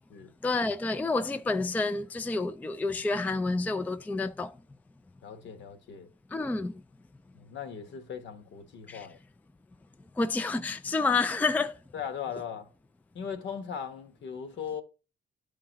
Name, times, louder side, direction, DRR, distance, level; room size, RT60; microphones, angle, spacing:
voice 1, 0.4-4.6 6.3-6.7 8.9-9.1 10.2-11.8, left 3 dB, 10° left, 0.4 m, -29 dB
voice 2, 5.2-6.1 7.3-9.2 11.9-12.7 13.1-14.8, left 7 dB, 65° left, 1.2 m, -38 dB
11.0 x 3.8 x 2.9 m
cardioid pair, 90°, 20 cm